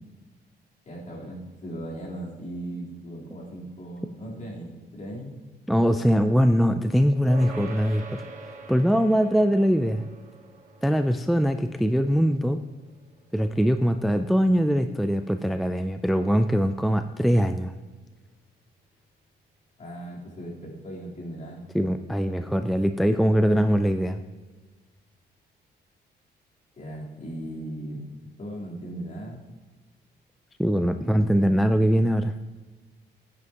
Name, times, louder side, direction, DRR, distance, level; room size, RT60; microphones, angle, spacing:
voice 1, 0.9-5.4 19.8-21.6 26.8-28.0 28.4-29.4 31.0-31.8, right 1 dB, 45° left, -5 dB, 3.6 m, -38 dB
voice 2, 5.7-8.2 8.7-10.0 10.8-12.6 13.3-17.7 21.7-24.2 30.6-32.3, equal, ahead, 8 dB, 0.3 m, -22 dB
sound 1, 7.3-17.0, right 3 dB, 45° right, 1.2 m, -46 dB
15.5 x 9.8 x 2.9 m, 1.3 s
cardioid pair, 155°, 18 cm